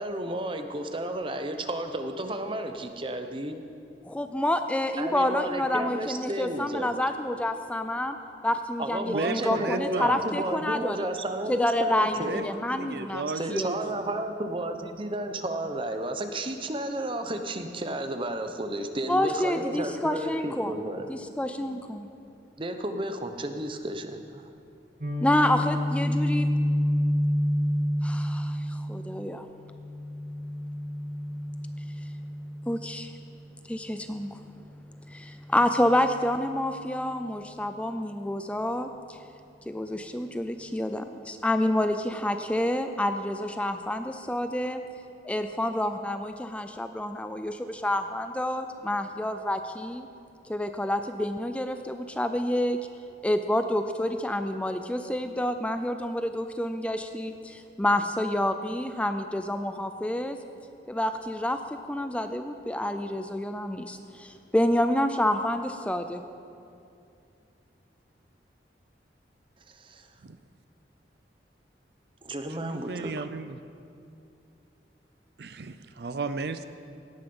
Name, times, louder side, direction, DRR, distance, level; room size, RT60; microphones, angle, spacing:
voice 1, 0.0-3.6 5.0-6.9 8.8-12.5 13.4-21.1 22.6-24.5 72.3-73.2, right 1 dB, 30° right, 7 dB, 0.9 m, -32 dB
voice 2, 4.0-8.2 8.4-11.1 11.5-13.7 19.1-20.7 21.1-22.1 25.2-26.5 28.0-29.5 32.7-33.1 33.7-34.4 35.1-39.2 39.7-41.1 41.4-44.8 45.2-50.1 50.5-52.8 53.2-60.4 60.9-61.6 61.9-66.2, left 1 dB, 5° left, 8 dB, 0.4 m, -28 dB
voice 3, 9.1-10.2 12.2-14.0 72.6-73.6 75.4-76.6, right 3 dB, 65° right, 11 dB, 0.5 m, -34 dB
Guitar, 25.0-32.9, equal, 45° right, 1.9 m, -29 dB
17.5 x 10.5 x 5.5 m, 2.5 s
head